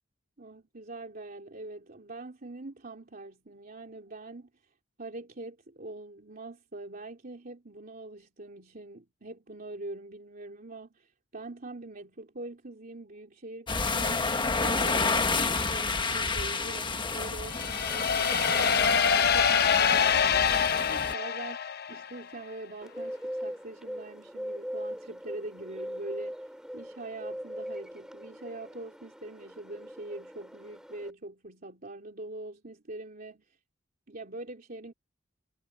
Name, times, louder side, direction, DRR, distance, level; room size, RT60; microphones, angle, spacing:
voice 1, 0.4-4.7 5.0-21.6 21.9-26.5 26.7-33.6 34.1-34.9, right 2 dB, 45° right, 3.1 m, -43 dB
sound 1, 13.7-21.1, left 4 dB, 25° left, 1.3 m, -30 dB
sound 2, 17.5-22.2, left 7 dB, 55° left, 0.8 m, -25 dB
Bird, 22.8-31.1, equal, 5° right, 4.7 m, -40 dB
head